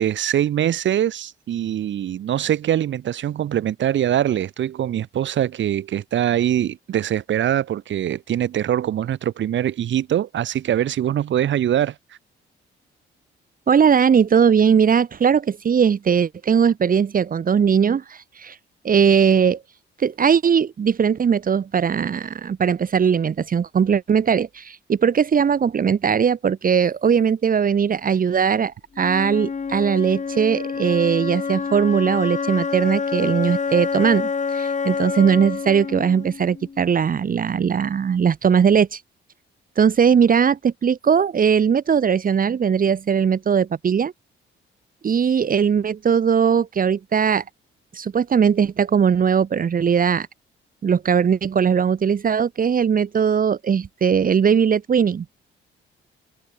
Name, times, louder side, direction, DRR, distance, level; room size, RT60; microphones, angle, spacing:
voice 1, 0.0-11.9, right 11 dB, 70° right, 4.4 m, -23 dB
voice 2, 13.7-18.6 18.8-19.6 20.0-39.0 39.8-44.1 45.0-47.4 47.9-50.3 50.8-55.3, right 7 dB, 45° right, 2.0 m, -19 dB
Wind instrument woodwind instrument, 29.0-37.0, left 5 dB, 40° left, 6.4 m, -27 dB
cardioid pair, 90°, 20 cm